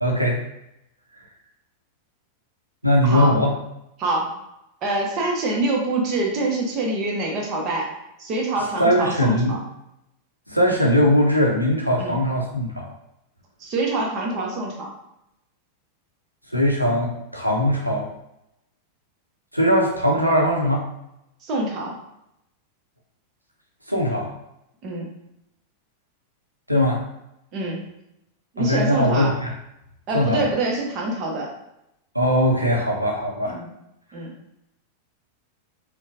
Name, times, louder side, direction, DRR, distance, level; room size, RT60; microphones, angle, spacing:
voice 1, 0.0-0.4 2.8-3.5 8.8-9.5 10.5-12.9 16.5-18.1 19.5-20.8 23.9-24.3 26.7-27.0 28.6-29.5 30.1-30.4 32.1-33.6, equal, 90° right, 0 dB, 0.7 m, -20 dB
voice 2, 3.0-3.4 4.0-4.3 4.8-7.9 8.2-9.6 12.0-12.1 13.6-14.9 21.4-22.0 24.8-25.1 27.5-27.9 28.5-29.3 30.1-31.5 33.5-33.7 34.1-34.3, right 2 dB, 35° right, -1 dB, 0.9 m, -25 dB
4.2 x 2.3 x 2.6 m, 0.84 s
figure-of-eight pair, 90°, 0 cm